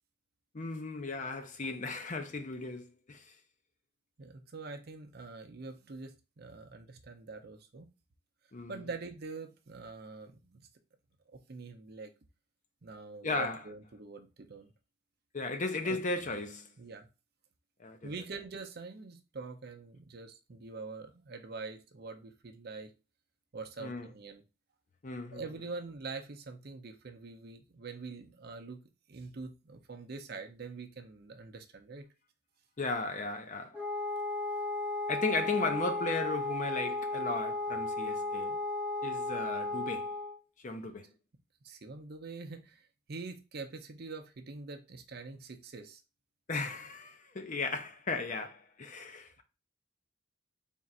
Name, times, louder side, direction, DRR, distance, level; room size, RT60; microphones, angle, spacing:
voice 1, 0.5-3.3 8.5-8.8 13.2-13.6 15.3-16.7 17.8-18.1 23.8-24.1 25.0-25.4 32.8-33.8 35.1-38.6 39.0-40.1 40.6-41.1 46.5-49.4, left 3 dB, 40° left, 0.6 m, -36 dB
voice 2, 4.2-7.9 8.7-10.7 11.3-12.1 12.8-14.7 15.8-16.0 16.8-17.1 18.0-22.9 23.5-24.4 25.3-28.8 29.1-32.0 41.6-46.0, right 4 dB, 50° right, 0.6 m, -45 dB
Wind instrument woodwind instrument, 33.7-40.4, left 2 dB, 5° right, 0.9 m, -35 dB
3.6 x 2.5 x 4.2 m
head